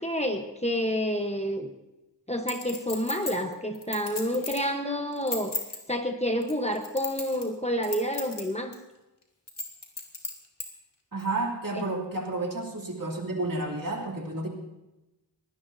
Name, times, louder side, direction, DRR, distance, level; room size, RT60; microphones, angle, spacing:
voice 1, 0.0-1.7 2.3-5.5 5.9-8.7 11.7-11.8, equal, 15° left, 4 dB, 1.1 m, -29 dB
Chink clink, 2.5-4.7 5.1-5.8 6.4-7.5 7.8-8.4 8.7-8.8 9.5-10.7 11.2-11.3, left 3 dB, 70° left, 2.9 m, -34 dB
voice 2, 11.1-14.5, right 2 dB, 50° right, -1 dB, 3.1 m, -31 dB
23.0 x 17.5 x 2.7 m, 0.99 s
wide cardioid pair, 65°, 43 cm